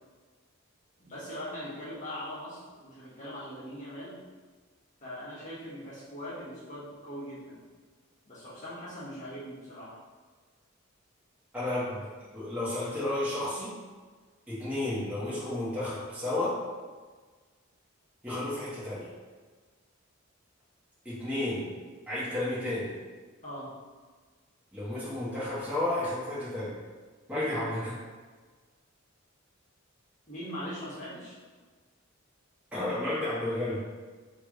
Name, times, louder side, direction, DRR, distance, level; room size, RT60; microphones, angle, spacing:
voice 1, 1.0-4.2 5.0-7.6 8.2-10.0 23.4-23.7 27.3-27.7 30.3-31.4, equal, 35° left, -9 dB, 1.5 m, -41 dB
voice 2, 11.5-13.7 14.5-16.7 18.2-19.1 21.0-21.7 22.1-22.9 24.7-26.8 27.3-27.9 32.7-33.8, left 1 dB, 5° right, -12 dB, 1.3 m, -32 dB
3.5 x 3.2 x 4.8 m, 1.4 s
head